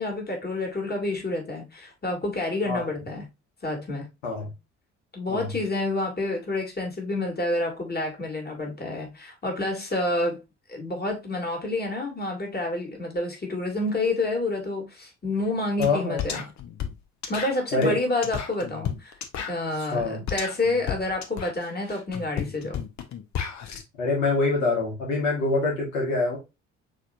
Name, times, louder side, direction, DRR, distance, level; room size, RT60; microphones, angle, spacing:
voice 1, 0.0-3.2 3.6-4.1 5.1-10.4 10.7-16.4 17.3-19.2 19.5-22.8, left 2 dB, 25° left, 2.4 m, -28 dB
voice 2, 15.8-16.2 17.7-18.0 19.9-20.2 24.0-26.4, left 3 dB, 80° left, 1.6 m, -25 dB
sound 1, 15.8-15.9 16.2-23.8, left 8 dB, 50° left, 1.0 m, -33 dB
6.2 x 3.2 x 2.4 m
hypercardioid pair, 50°, 36 cm